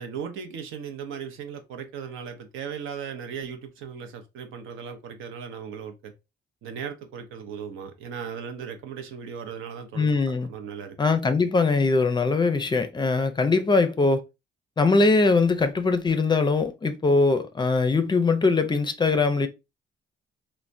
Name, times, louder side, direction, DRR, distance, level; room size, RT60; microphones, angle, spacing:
voice 1, 0.0-6.1 6.6-11.0, right 7 dB, 85° right, 0.6 m, -37 dB
voice 2, 10.0-10.5 11.0-14.2 14.8-19.5, left 3 dB, 25° left, 0.4 m, -21 dB
3.2 x 2.1 x 2.5 m
cardioid pair, 90°, 20 cm